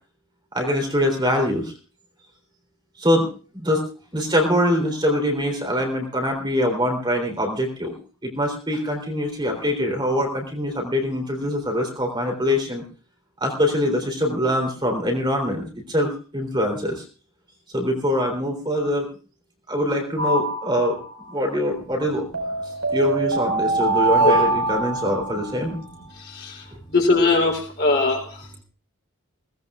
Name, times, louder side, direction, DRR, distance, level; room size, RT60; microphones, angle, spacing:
voice 1, 0.5-1.7 3.0-3.3 3.5-3.9 4.1-7.9 8.2-12.8 13.4-17.0 17.7-19.1 19.7-21.0 21.3-22.3 22.9-25.8, equal, 20° right, 2 dB, 3.4 m, -23 dB
sound 1, 20.2-21.2 22.3-25.6, right 3 dB, 70° right, 5.0 m, -23 dB
voice 2, 26.9-28.2, left 3 dB, 45° left, 1 dB, 3.8 m, -19 dB
22.0 x 18.0 x 2.4 m, 0.37 s
head